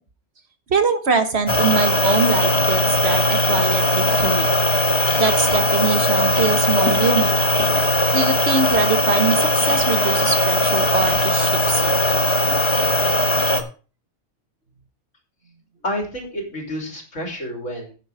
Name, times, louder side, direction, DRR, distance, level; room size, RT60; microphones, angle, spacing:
voice 1, 0.7-4.5 5.2-7.3 8.1-11.9, right 5 dB, 60° right, 8 dB, 1.6 m, -22 dB
sound 1, 1.5-13.6, left 1 dB, 25° left, 1.3 m, -19 dB
voice 2, 15.8-17.9, equal, 80° left, 2 dB, 3.6 m, -29 dB
10.0 x 8.7 x 4.8 m, 0.36 s
omnidirectional pair, 1.3 m